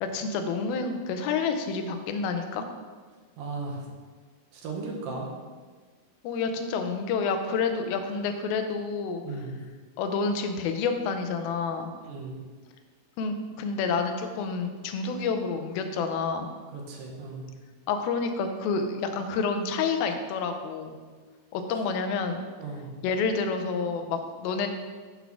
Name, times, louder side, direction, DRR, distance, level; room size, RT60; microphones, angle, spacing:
voice 1, 0.0-2.6 6.2-9.2 10.0-11.9 13.2-16.5 17.9-21.0 21.5-22.4 23.0-24.7, left 5 dB, 90° left, 7 dB, 2.5 m, -29 dB
voice 2, 3.4-3.8 4.5-5.3 9.2-9.6 12.0-12.4 16.7-17.4 22.6-22.9, right 3 dB, 80° right, 0 dB, 2.7 m, -36 dB
7.3 x 4.0 x 5.7 m, 1.5 s
omnidirectional pair, 4.2 m